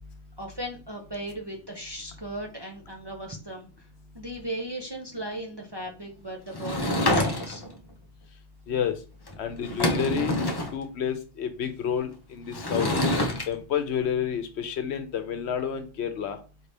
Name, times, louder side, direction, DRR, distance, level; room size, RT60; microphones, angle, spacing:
voice 1, 0.4-3.9 4.1-7.6, right 1 dB, 30° right, 1 dB, 0.5 m, -37 dB
Sliding door / Wood, 6.5-7.8 9.3-9.4 9.6-10.7 12.5-13.5, left 1 dB, 30° left, 0.5 m, -26 dB
voice 2, 9.4-10.3 10.7-12.9 13.5-16.4, left 8 dB, 70° left, 8 dB, 0.9 m, -29 dB
4.4 x 2.7 x 3.3 m, 0.34 s
omnidirectional pair, 1.2 m